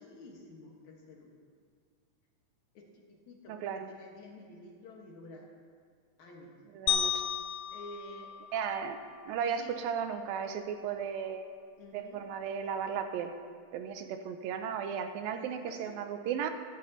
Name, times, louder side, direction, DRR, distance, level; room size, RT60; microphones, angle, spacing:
voice 1, 0.0-1.4 2.7-5.5 6.2-6.6 7.7-8.3 9.6-9.7 11.8-12.2 15.3-15.9, left 1 dB, 60° left, -1 dB, 2.5 m, -50 dB
voice 2, 3.5-3.9 6.7-7.2 8.5-9.0 9.3-11.5 11.9-13.3 13.7-16.5, right 7 dB, 85° right, 7 dB, 2.5 m, -35 dB
sound 1, 6.9-9.2, left 8 dB, 85° left, 1.6 m, -34 dB
15.5 x 14.5 x 2.9 m, 2.1 s
omnidirectional pair, 4.1 m